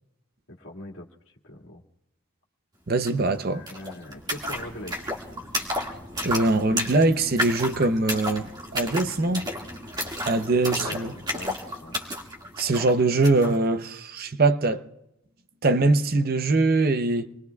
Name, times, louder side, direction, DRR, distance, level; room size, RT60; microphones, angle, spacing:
voice 1, 0.5-1.8 3.5-5.1 10.7-11.1 11.3-12.0, left 1 dB, 70° left, 2.0 m, -41 dB
voice 2, 2.9-3.6 6.2-9.5 10.3-11.1 12.6-14.8 15.6-17.3, right 2 dB, 45° right, 0.7 m, -22 dB
sound 1, 3.1-3.2 3.4-13.6, equal, 20° right, 1.9 m, -32 dB
27.5 x 21.0 x 2.3 m
head